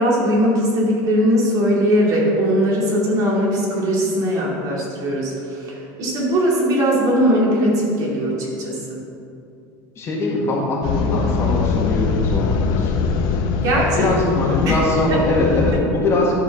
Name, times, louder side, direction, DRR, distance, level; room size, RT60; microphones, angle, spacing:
voice 1, 0.0-9.0 13.6-14.2 14.7-14.8 15.1-15.2, equal, 40° right, -4 dB, 2.5 m, -19 dB
voice 2, 10.0-13.1 13.6-16.3, left 2 dB, 30° left, -3 dB, 1.8 m, -22 dB
sound 1, 10.8-15.8, left 5 dB, 50° left, 0.8 m, -22 dB
12.0 x 4.8 x 6.3 m, 2.5 s
cardioid pair, 160°, 9 cm